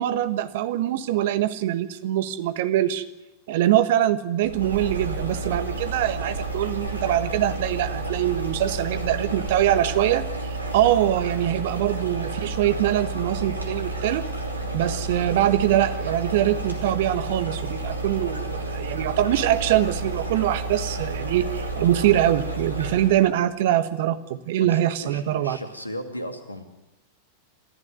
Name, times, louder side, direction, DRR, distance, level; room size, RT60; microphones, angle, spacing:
voice 1, 0.0-3.0 3.5-14.2 14.7-25.6, right 12 dB, 55° right, 13 dB, 1.4 m, -23 dB
sound 1, 4.4-23.3, right 2 dB, 80° right, 3.0 m, -31 dB
voice 2, 24.6-26.7, equal, 85° left, 7 dB, 2.4 m, -36 dB
27.0 x 15.0 x 9.4 m, 0.97 s
figure-of-eight pair, 90°, 0 cm